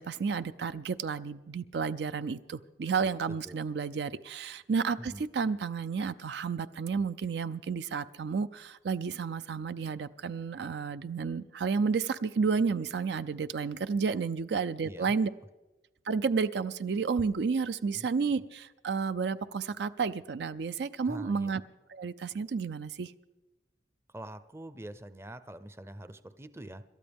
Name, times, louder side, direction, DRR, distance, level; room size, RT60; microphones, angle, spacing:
voice 1, 0.0-15.3 16.1-21.6 21.9-23.1, right 5 dB, 70° right, 0.4 m, -31 dB
voice 2, 14.8-15.2 17.9-18.1 21.1-21.5 24.1-26.8, right 1 dB, 15° right, 0.5 m, -45 dB
27.0 x 12.5 x 3.5 m
head